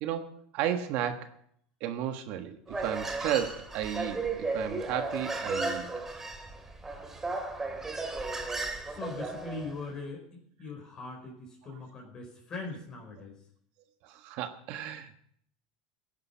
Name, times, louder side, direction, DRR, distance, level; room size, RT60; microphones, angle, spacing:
voice 1, 0.0-1.3 1.8-5.9 14.0-15.3, right 10 dB, 55° right, 7 dB, 1.4 m, -33 dB
Human voice, 2.7-9.8, right 3 dB, 15° right, 2.3 m, -35 dB
voice 2, 8.8-13.3, left 3 dB, 30° left, 0 dB, 4.9 m, -41 dB
17.0 x 10.5 x 5.7 m, 0.67 s
supercardioid pair, 135°, 3 cm